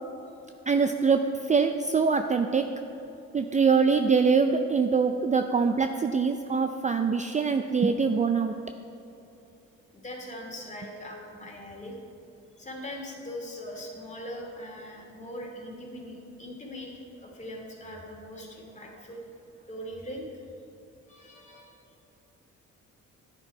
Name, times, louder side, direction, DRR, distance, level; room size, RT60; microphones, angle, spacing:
voice 1, 0.7-2.7 3.3-8.5, right 5 dB, 25° right, 7 dB, 0.5 m, -24 dB
voice 2, 9.9-11.9 12.6-19.2 19.7-20.4 21.1-21.8, left 1 dB, 25° left, 0 dB, 2.6 m, -41 dB
11.0 x 9.8 x 4.6 m, 2.9 s
cardioid pair, 90°, 30 cm